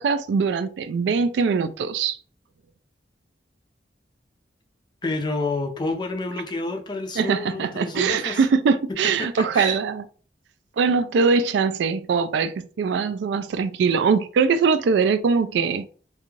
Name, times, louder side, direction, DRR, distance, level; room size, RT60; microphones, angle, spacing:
voice 1, 0.0-2.2 7.2-10.1 10.8-15.9, right 5 dB, 80° right, 0.3 m, -22 dB
voice 2, 5.0-8.4 9.2-9.8, left 3 dB, 25° left, 0.4 m, -29 dB
2.5 x 2.3 x 3.0 m
head